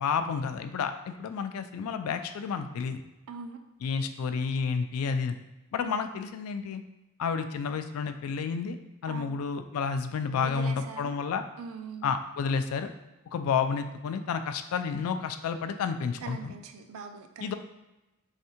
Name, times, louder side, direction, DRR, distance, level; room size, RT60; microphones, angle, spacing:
voice 1, 0.0-3.0 3.8-5.3 5.7-6.8 7.2-8.8 9.0-11.4 12.0-12.9 13.3-16.5 17.4-17.5, left 6 dB, 80° left, 9 dB, 0.3 m, -30 dB
voice 2, 3.3-3.6 5.8-6.0 9.1-9.4 10.3-11.2 11.6-12.1 16.2-17.5, right 5 dB, 75° right, 6 dB, 0.4 m, -42 dB
3.5 x 3.2 x 2.8 m, 1.0 s
head